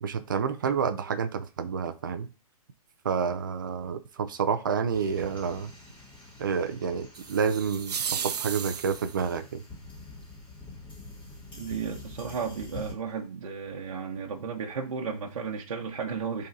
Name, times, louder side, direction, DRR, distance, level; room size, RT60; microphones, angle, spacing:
voice 1, 0.0-2.3 3.0-5.7 6.4-7.9 8.2-9.6, right 6 dB, 30° right, 0.5 m, -29 dB
sound 1, 4.9-12.9, left 2 dB, 10° left, 3.0 m, -46 dB
sound 2, 7.1-9.3, right 7 dB, 90° right, 0.7 m, -34 dB
voice 2, 11.5-16.5, right 6 dB, 55° right, 1.1 m, -34 dB
11.0 x 3.9 x 2.8 m
hypercardioid pair, 175°, 20 cm